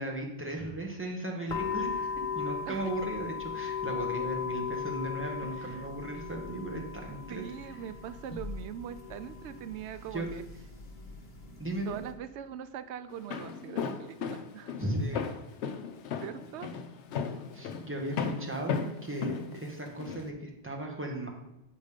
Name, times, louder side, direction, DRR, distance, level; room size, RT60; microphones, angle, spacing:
voice 1, 0.0-7.4 7.7-7.8 10.1-10.3 11.6-12.0 14.8-15.2 17.5-21.3, right 1 dB, 10° right, 0 dB, 1.4 m, -36 dB
sound 1, 1.5-12.1, left 6 dB, 50° left, 1.4 m, -38 dB
voice 2, 5.4-5.9 7.3-10.4 11.8-14.7 16.2-16.7 17.6-17.7, right 9 dB, 90° right, 12 dB, 0.9 m, -42 dB
Walk footsteps, 13.1-20.2, left 6 dB, 80° left, 1.0 m, -35 dB
8.9 x 5.2 x 5.1 m, 0.90 s
omnidirectional pair, 1.1 m